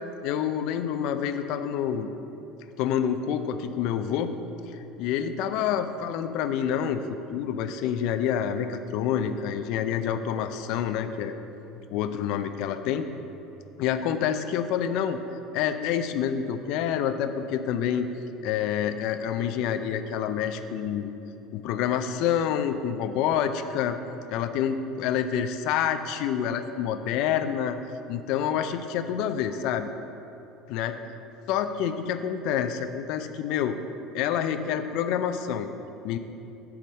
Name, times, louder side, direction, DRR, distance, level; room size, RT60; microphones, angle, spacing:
voice 1, 0.2-2.1 2.8-4.3 5.0-11.3 11.9-13.1 13.8-15.2 15.5-18.1 18.4-21.1 21.5-24.0 24.3-27.8 28.1-29.9 30.7-30.9 31.5-33.8 34.1-35.7 36.0-36.2, left 9 dB, 65° left, 9 dB, 0.5 m, -27 dB
9.3 x 3.6 x 6.3 m, 2.9 s
hypercardioid pair, 85°, 0 cm